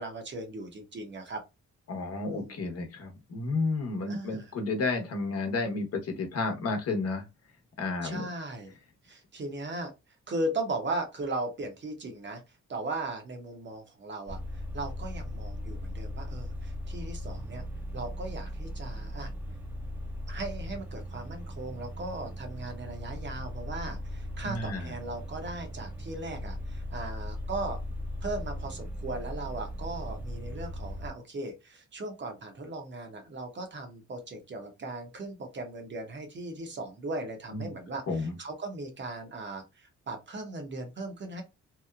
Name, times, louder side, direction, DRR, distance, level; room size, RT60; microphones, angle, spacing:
voice 1, 0.0-1.4 2.2-2.6 4.1-4.5 8.0-8.7 9.0-9.9 10.3-12.4 12.7-17.6 17.9-19.3 20.3-27.8 28.2-41.4, right 2 dB, 40° right, 4 dB, 0.8 m, -37 dB
voice 2, 1.9-7.2 7.8-8.3 24.4-24.9 37.5-37.7 38.1-38.3, left 3 dB, 55° left, 4 dB, 0.9 m, -31 dB
sound 1, 14.3-31.1, equal, 5° right, 0.7 m, -38 dB
2.9 x 2.0 x 2.3 m, 0.24 s
cardioid pair, 90°, 30 cm